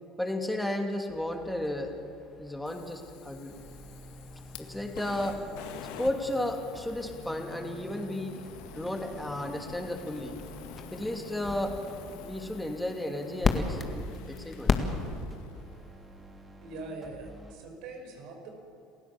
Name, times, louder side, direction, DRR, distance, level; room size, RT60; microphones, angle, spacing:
voice 1, 0.2-1.9 2.4-3.6 4.6-5.4 6.0-8.4 8.7-10.4 10.9-11.8 12.1-14.7, left 1 dB, 5° left, 3 dB, 2.7 m, -33 dB
sound 1, 1.1-15.5, left 4 dB, 30° left, 1.9 m, -37 dB
Fire, 2.7-15.8, left 8 dB, 80° left, 1.8 m, -48 dB
sound 2, 3.5-17.5, equal, 20° right, 3.5 m, -50 dB
voice 2, 16.6-18.5, right 3 dB, 70° right, 3 dB, 5.2 m, -42 dB
28.0 x 15.5 x 7.2 m, 2.6 s
supercardioid pair, 100°, 0 cm